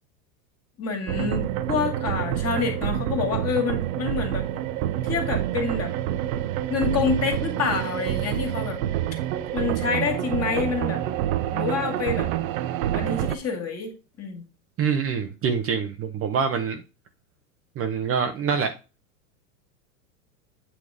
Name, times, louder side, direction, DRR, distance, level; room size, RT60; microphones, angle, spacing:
voice 1, 0.8-4.5 5.0-5.9 6.7-8.8 9.5-11.0 11.5-12.3 12.9-14.4, left 5 dB, 30° left, 2.2 m, -27 dB
sound 1, 1.1-13.4, right 12 dB, 60° right, 0.8 m, -27 dB
voice 2, 14.8-16.8 17.8-18.7, right 6 dB, 30° right, 0.8 m, -25 dB
8.7 x 3.2 x 4.9 m
hypercardioid pair, 110°, 47 cm